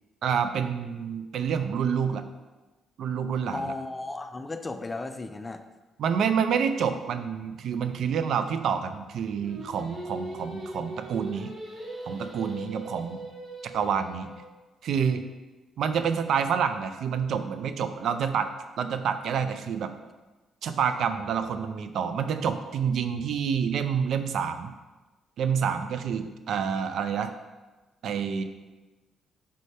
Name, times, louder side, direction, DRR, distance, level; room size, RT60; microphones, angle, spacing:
voice 1, 0.2-2.2 3.0-3.7 6.0-11.5 12.1-13.2 13.6-14.3 14.8-15.2 15.8-18.5 18.8-19.9 20.6-24.7 25.4-27.3 28.0-28.4, right 7 dB, 70° right, 9 dB, 0.5 m, -28 dB
voice 2, 3.5-5.6, left 2 dB, 25° left, 8 dB, 0.4 m, -35 dB
Singing, 9.4-14.5, right 1 dB, 35° right, 1.3 m, -40 dB
5.5 x 5.3 x 3.3 m, 1.2 s
cardioid pair, 90°, 0 cm